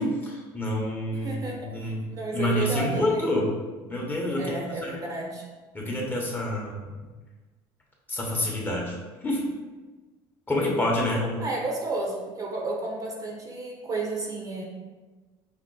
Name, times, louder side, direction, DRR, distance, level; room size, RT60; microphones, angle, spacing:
voice 1, 0.0-3.5 3.9-4.9 5.7-6.9 8.1-9.0 9.2-9.4 10.5-11.4, left 1 dB, 15° left, -3 dB, 1.0 m, -28 dB
voice 2, 1.1-3.2 4.4-5.5 11.4-14.6, right 2 dB, 30° right, -1 dB, 0.8 m, -32 dB
5.1 x 2.0 x 3.8 m, 1.3 s
supercardioid pair, 105°, 11 cm